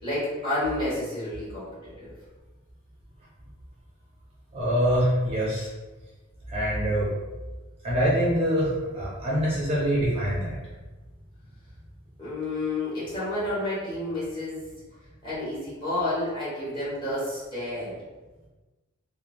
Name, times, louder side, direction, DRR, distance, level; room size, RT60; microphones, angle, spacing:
voice 1, 0.0-2.1 12.2-14.6 15.2-18.0, left 1 dB, 25° left, -11 dB, 1.5 m, -30 dB
voice 2, 4.5-5.7 6.5-7.1 7.8-10.6, equal, 30° right, -7 dB, 0.6 m, -24 dB
3.1 x 2.1 x 2.5 m, 1.2 s
head